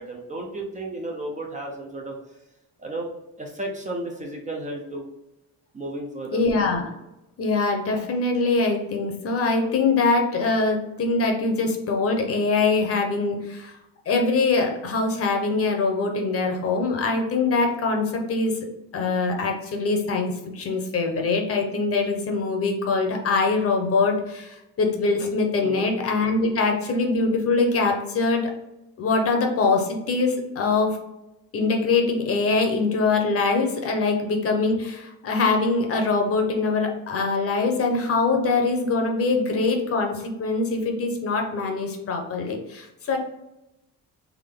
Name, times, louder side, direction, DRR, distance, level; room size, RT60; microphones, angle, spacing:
voice 1, 0.0-2.4 2.8-3.1 3.4-5.1 5.7-6.4 25.6-25.9, right 2 dB, 20° right, 0 dB, 0.6 m, -33 dB
voice 2, 6.3-6.9 7.4-13.7 14.1-18.5 18.9-28.4 29.0-31.0 31.5-43.2, left 3 dB, 40° left, 2 dB, 0.8 m, -23 dB
3.6 x 3.2 x 3.6 m, 0.91 s
cardioid pair, 145°, 35 cm